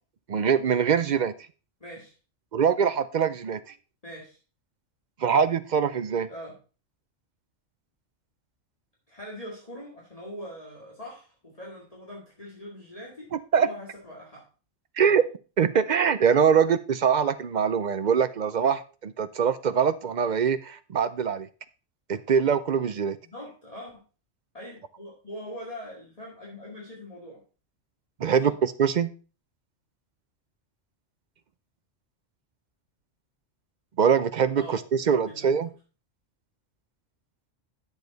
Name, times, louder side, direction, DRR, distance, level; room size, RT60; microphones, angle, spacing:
voice 1, 0.3-1.3 2.5-3.6 5.2-6.3 13.3-13.7 15.0-15.2 15.6-21.5 22.1-23.2 28.2-29.1 34.0-35.7, right 7 dB, 55° right, 12 dB, 0.5 m, -23 dB
voice 2, 1.8-2.1 4.0-4.4 6.3-6.6 9.1-14.5 15.0-15.2 23.2-24.0 24.5-27.4 28.3-28.5 34.6-35.5, equal, 30° left, -4 dB, 2.2 m, -42 dB
9.9 x 6.8 x 4.0 m, 0.35 s
omnidirectional pair, 1.3 m